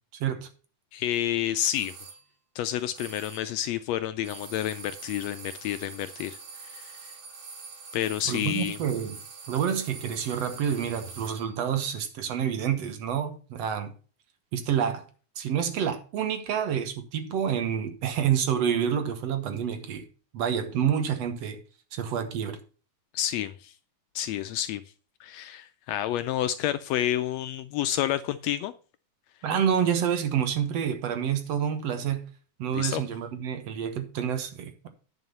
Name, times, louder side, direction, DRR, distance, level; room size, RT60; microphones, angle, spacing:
voice 1, 0.9-1.9 2.5-7.1 7.9-8.8 23.1-23.7 24.1-24.8 25.2-28.7 32.7-33.0, left 12 dB, 80° left, 1.6 m, -29 dB
sound 1, 1.7-2.2 3.0-3.6 4.2-11.6, right 4 dB, 85° right, 3.1 m, -44 dB
voice 2, 8.3-9.2 9.5-13.9 14.5-15.1 15.4-20.0 20.3-21.6 21.9-22.6 29.4-32.2 32.6-34.9, right 8 dB, 65° right, 2.1 m, -28 dB
9.8 x 5.6 x 5.4 m
omnidirectional pair, 3.3 m